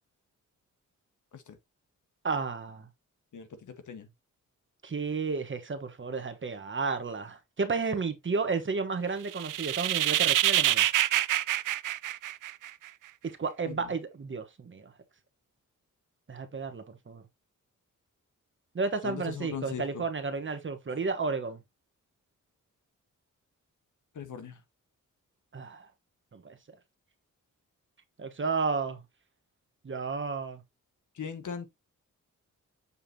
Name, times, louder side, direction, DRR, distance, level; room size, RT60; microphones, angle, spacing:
voice 1, 2.2-2.9 4.8-10.9 13.4-14.9 16.3-17.2 18.7-21.6 25.5-25.9 26.3-26.6 28.2-29.0 29.8-30.6, right 4 dB, 40° right, 1.2 m, -32 dB
voice 2, 3.3-4.1 13.6-13.9 19.0-20.0 24.1-24.6 31.1-31.7, left 7 dB, 70° left, 1.4 m, -39 dB
sound 1, 9.3-12.9, right 13 dB, 80° right, 0.5 m, -26 dB
7.0 x 5.6 x 2.8 m
wide cardioid pair, 110°, 31 cm